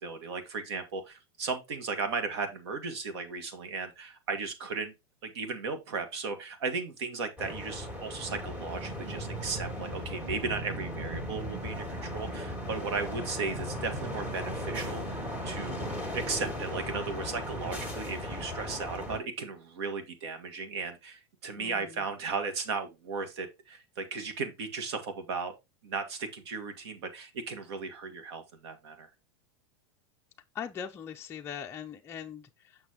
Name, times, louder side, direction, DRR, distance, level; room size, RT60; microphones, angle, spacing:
voice 1, 0.0-4.9 5.2-25.5 25.8-29.1, right 4 dB, 75° right, 2.0 m, -36 dB
sound 1, 7.4-19.2, equal, 10° right, 1.9 m, -37 dB
voice 2, 21.6-22.0 30.5-32.8, left 8 dB, 15° left, 0.5 m, -41 dB
6.8 x 5.9 x 3.0 m
supercardioid pair, 150°, 14 cm